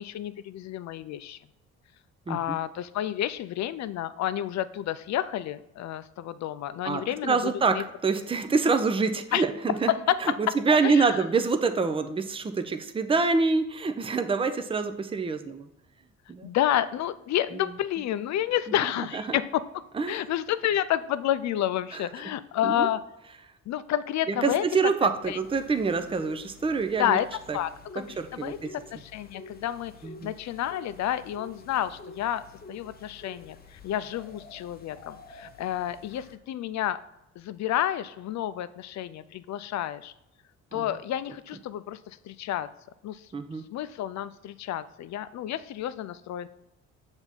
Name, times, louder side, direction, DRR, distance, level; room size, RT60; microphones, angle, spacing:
voice 1, 0.0-1.4 2.3-7.8 9.3-9.4 9.9-10.4 10.7-11.2 16.4-19.6 20.1-23.0 23.7-24.7 25.3-25.4 27.0-27.3 27.5-28.0 28.3-28.6 28.9-29.9 30.2-37.0 37.4-40.1 40.7-42.7 43.0-43.3 43.7-46.5, left 12 dB, 65° left, 14 dB, 0.5 m, -30 dB
voice 2, 6.8-9.9 10.2-15.7 16.3-16.5 17.5-17.7 19.1-19.4 19.9-20.2 21.9-22.0 22.6-22.9 24.3-27.2 27.5-27.6 28.2-28.7 30.0-30.3 40.7-40.8 43.3-43.6, right 4 dB, 20° right, 8 dB, 0.5 m, -26 dB
sound 1, 25.2-36.4, left 3 dB, 30° left, 0.8 m, -48 dB
7.0 x 3.5 x 4.1 m, 0.86 s
cardioid pair, 90°, 30 cm